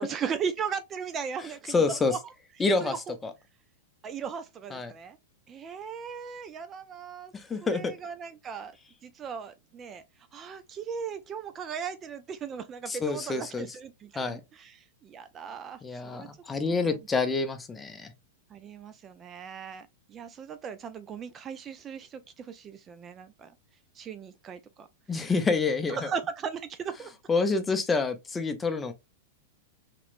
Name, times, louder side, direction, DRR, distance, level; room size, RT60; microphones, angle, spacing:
voice 1, 0.0-2.3 2.8-3.2 4.0-5.2 5.5-7.3 7.6-8.8 9.0-10.0 10.3-16.3 16.7-17.0 18.5-23.5 23.9-24.9 25.9-27.1, right 6 dB, 30° right, 0.3 m, -37 dB
voice 2, 1.7-2.1 2.6-2.9 3.2-3.3 4.7-4.9 7.3-7.9 12.9-13.7 14.2-14.4 15.8-18.1 25.1-26.0 27.3-28.9, left 4 dB, 15° left, 0.6 m, -27 dB
3.0 x 2.9 x 2.5 m
hypercardioid pair, 110°, 0 cm